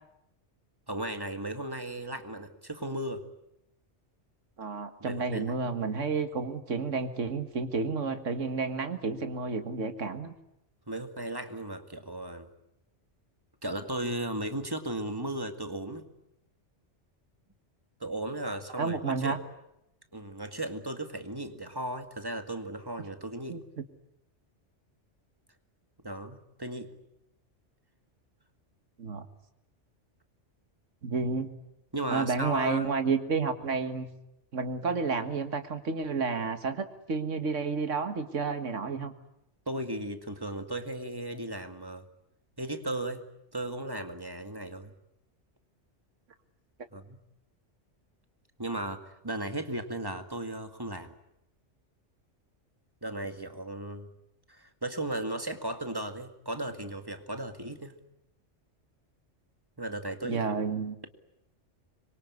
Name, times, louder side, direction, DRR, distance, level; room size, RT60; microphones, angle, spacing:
voice 1, 0.9-3.2 5.0-5.5 10.9-12.5 13.6-16.0 18.0-19.4 20.1-23.6 26.0-26.9 31.9-32.9 39.7-42.0 42.6-43.2 43.5-44.9 46.9-47.2 48.6-51.1 53.0-54.1 54.5-58.0 59.8-60.5, right 1 dB, 20° right, 7 dB, 2.1 m, -36 dB
voice 2, 4.6-10.3 18.8-19.4 23.5-23.6 29.0-29.3 31.0-31.5 32.1-34.1 34.5-39.1 60.2-61.0, right 4 dB, 90° right, 8 dB, 2.0 m, -31 dB
25.5 x 23.5 x 9.6 m, 0.83 s
omnidirectional pair, 1.2 m